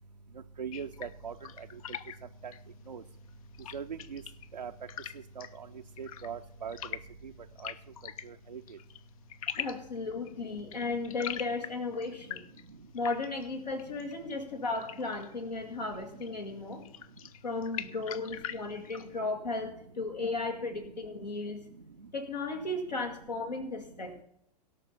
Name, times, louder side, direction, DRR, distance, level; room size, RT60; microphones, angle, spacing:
voice 1, 0.6-1.3 2.4-2.5 2.9-3.0 3.7-4.2 4.5-4.7 5.4-5.7 6.0-6.8 7.6-7.7 8.3-8.6, right 7 dB, 85° right, 4 dB, 0.5 m, -40 dB
sound 1, 0.7-19.2, left 10 dB, 55° left, 0.6 m, -45 dB
voice 2, 9.5-12.4 12.9-16.8 17.4-21.6 22.1-24.2, left 3 dB, 80° left, 3 dB, 2.0 m, -35 dB
17.5 x 5.8 x 5.6 m, 0.76 s
figure-of-eight pair, 95°, 21 cm